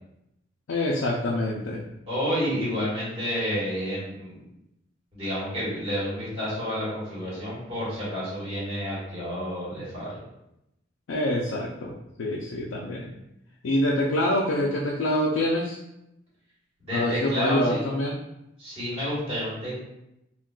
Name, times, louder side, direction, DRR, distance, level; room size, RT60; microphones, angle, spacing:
voice 1, 0.7-1.8 11.1-13.1 13.6-15.8 16.9-18.2, left 1 dB, 85° left, -2 dB, 0.4 m, -26 dB
voice 2, 2.1-4.4 5.1-10.2 16.8-17.8 18.6-19.7, equal, 30° right, -8 dB, 1.3 m, -30 dB
3.6 x 2.2 x 2.3 m, 0.86 s
head